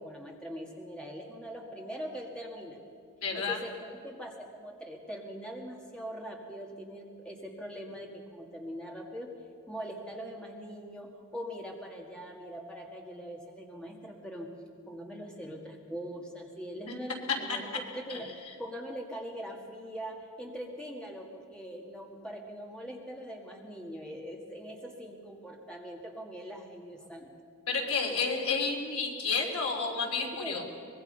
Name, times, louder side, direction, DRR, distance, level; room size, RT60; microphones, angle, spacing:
voice 1, 0.0-2.8 3.3-9.3 9.7-14.5 14.9-17.7 18.1-18.2 18.6-27.3 30.4-30.6, equal, 5° left, -1 dB, 2.0 m, -42 dB
voice 2, 3.2-3.6 17.5-17.6 18.1-18.2 27.7-30.6, left 4 dB, 80° left, 1 dB, 3.3 m, -30 dB
24.0 x 21.0 x 5.5 m, 2.3 s
head